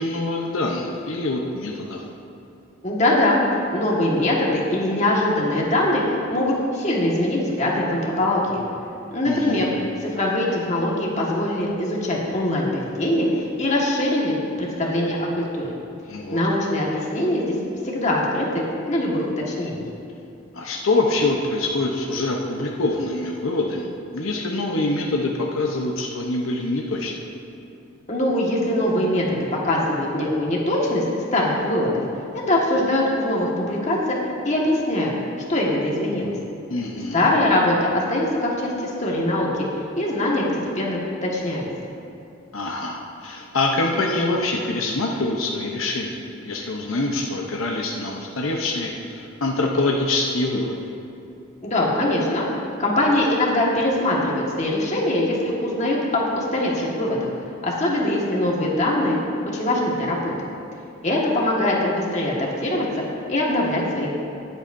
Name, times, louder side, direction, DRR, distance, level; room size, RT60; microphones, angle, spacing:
voice 1, 0.0-2.0 9.2-9.6 16.1-16.4 20.5-23.9 24.1-27.2 36.7-37.3 42.5-50.9, left 2 dB, 75° left, 0 dB, 0.8 m, -25 dB
voice 2, 2.8-3.4 3.7-8.6 9.1-9.7 10.0-15.7 16.3-17.5 17.9-19.8 28.1-31.0 31.3-31.9 32.5-34.2 34.4-35.1 35.5-36.3 37.1-40.4 40.7-41.6 51.6-52.5 52.8-57.3 57.6-59.2 59.5-60.3 61.0-63.0 63.3-64.1, left 1 dB, 35° left, -3 dB, 1.6 m, -22 dB
20.0 x 8.1 x 2.6 m, 2.7 s
head